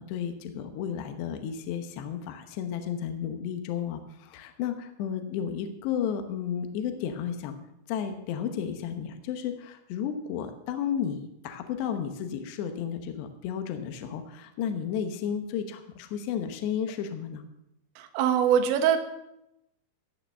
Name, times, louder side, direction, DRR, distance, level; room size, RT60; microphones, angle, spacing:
voice 1, 0.0-7.6 7.9-17.4, left 8 dB, 70° left, 7 dB, 2.9 m, -33 dB
voice 2, 18.0-19.0, right 8 dB, 75° right, 7 dB, 3.2 m, -23 dB
16.5 x 5.9 x 7.5 m, 0.85 s
omnidirectional pair, 5.9 m